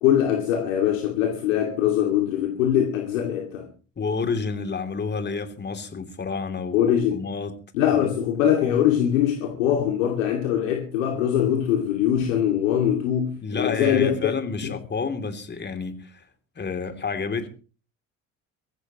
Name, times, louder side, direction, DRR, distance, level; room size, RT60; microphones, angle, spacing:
voice 1, 0.0-3.7 6.7-7.2 7.7-14.3 14.6-14.7, left 10 dB, 70° left, 2.5 m, -22 dB
voice 2, 4.0-6.8 7.1-7.5 7.9-8.1 13.4-16.2 16.5-17.5, left 4 dB, 25° left, 3.1 m, -29 dB
23.5 x 15.0 x 3.1 m
hypercardioid pair, 65°, 40 cm